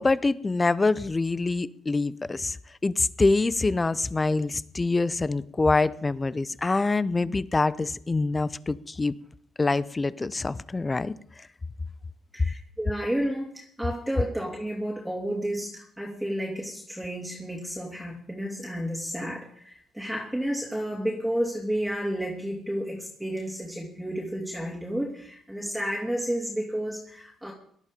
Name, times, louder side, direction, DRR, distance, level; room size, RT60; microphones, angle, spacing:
voice 1, 0.0-2.6 2.8-9.1 9.6-11.1, left 3 dB, 25° left, 0.7 m, -25 dB
voice 2, 12.3-27.5, equal, ahead, 2.8 m, -31 dB
18.0 x 12.0 x 5.2 m
cardioid pair, 90°, 0 cm